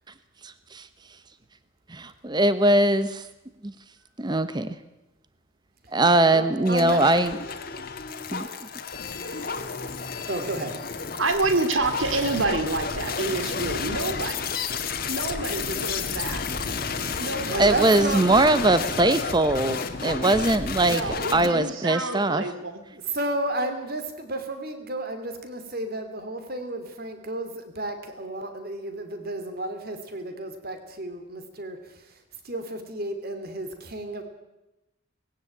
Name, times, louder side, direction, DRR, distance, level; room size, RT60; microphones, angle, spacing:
voice 1, 0.4-0.9 1.9-3.2 3.6-3.7 4.2-4.7 5.9-7.3 8.3-8.5 17.6-22.4, right 2 dB, 20° right, 12 dB, 0.8 m, -21 dB
voice 2, 6.3-7.0 10.3-10.7 17.5-18.2 22.9-32.0 32.4-34.2, right 1 dB, 50° right, 7 dB, 2.8 m, -32 dB
sound 1, 6.7-21.5, left 5 dB, 45° left, 1.7 m, -31 dB
voice 3, 11.2-14.4 15.1-16.4 17.2-17.7 20.8-22.8, right 2 dB, 85° right, 9 dB, 2.5 m, -28 dB
19.5 x 16.5 x 9.1 m, 0.94 s
head